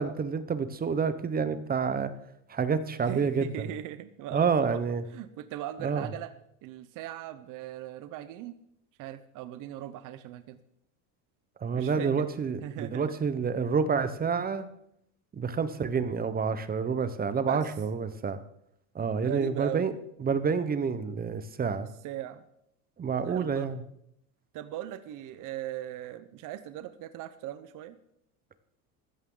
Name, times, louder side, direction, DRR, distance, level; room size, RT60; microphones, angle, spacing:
voice 1, 0.0-2.1 2.5-3.7 4.3-5.0 5.8-6.1 11.6-14.7 15.3-18.4 18.9-19.9 20.2-21.9 23.0-23.8, right 5 dB, 20° right, 12 dB, 1.0 m, -28 dB
voice 2, 3.0-4.8 5.1-6.3 6.6-8.5 9.0-10.6 11.7-12.2 12.6-13.2 17.4-17.6 19.2-19.9 22.0-22.4 23.2-23.7 24.5-28.0, right 12 dB, 50° right, 12 dB, 1.0 m, -39 dB
15.0 x 13.0 x 3.9 m, 0.76 s
supercardioid pair, 120°, 40 cm